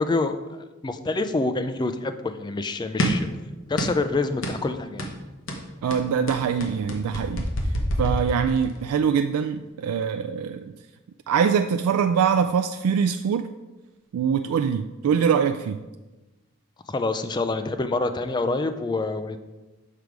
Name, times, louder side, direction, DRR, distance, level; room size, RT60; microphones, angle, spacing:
voice 1, 0.0-3.3 3.7-5.1 16.9-19.4, left 3 dB, 20° left, 9 dB, 0.3 m, -27 dB
sound 1, 3.0-3.3 3.8-4.1 4.4-4.6 5.0-5.2 5.5-8.8, equal, 60° left, 1.0 m, -27 dB
voice 2, 5.8-7.5 8.0-10.6 11.3-13.5 14.1-15.8, right 7 dB, 85° right, 7 dB, 0.3 m, -23 dB
6.7 x 5.0 x 4.6 m, 1.1 s
head